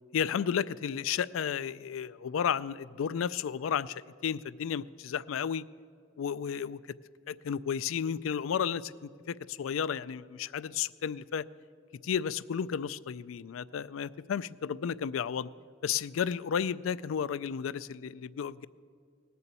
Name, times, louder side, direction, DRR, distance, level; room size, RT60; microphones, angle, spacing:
voice 1, 0.1-5.6 6.2-6.8 7.3-11.4 12.0-15.5 15.8-18.7, left 7 dB, 90° left, 18 dB, 0.4 m, -33 dB
19.0 x 6.9 x 8.2 m, 2.1 s
head